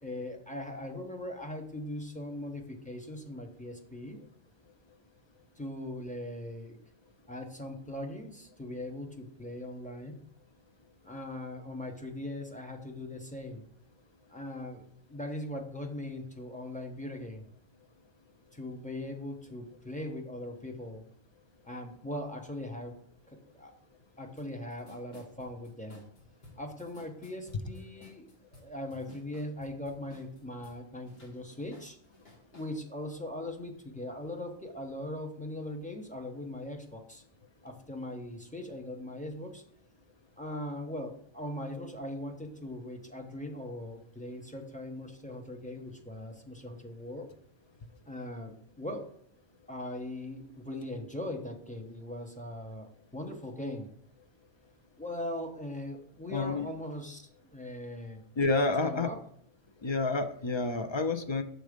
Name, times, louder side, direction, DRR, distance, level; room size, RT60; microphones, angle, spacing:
voice 1, 0.0-4.2 5.6-6.8 7.3-10.2 11.0-13.6 14.3-14.8 15.1-17.4 18.5-21.0 21.6-23.0 23.3-23.7 24.2-26.0 26.6-32.0 32.5-37.2 37.6-39.6 40.4-47.3 48.1-49.1 49.7-53.9 55.0-58.2 58.8-59.2, left 1 dB, 10° left, 2 dB, 0.7 m, -40 dB
sound 1, 24.4-24.5 24.7-30.8 31.1-32.7, left 3 dB, 60° left, 1.9 m, -55 dB
voice 2, 56.3-56.7 58.4-59.1 59.8-61.4, left 3 dB, 45° left, 6 dB, 0.3 m, -29 dB
6.3 x 3.9 x 5.0 m, 0.69 s
omnidirectional pair, 1.1 m